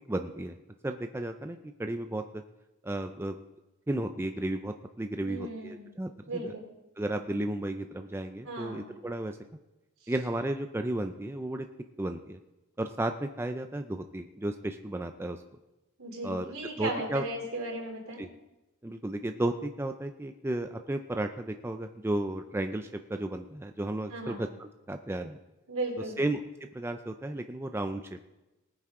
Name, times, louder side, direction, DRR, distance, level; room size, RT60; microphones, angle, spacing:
voice 1, 0.1-0.6 0.8-2.4 2.8-3.4 3.9-6.5 7.0-9.4 10.1-11.7 12.0-12.4 12.8-15.4 16.2-16.5 16.8-17.2 18.2-18.3 18.8-25.4 26.2-26.4 26.7-28.2, right 1 dB, 10° right, 6 dB, 0.4 m, -33 dB
voice 2, 5.2-5.9 6.3-6.7 8.4-8.9 10.0-10.1 16.0-18.3 24.1-24.4 25.7-26.2, right 2 dB, 70° right, 0 dB, 3.3 m, -36 dB
19.0 x 9.0 x 3.7 m, 1.0 s
head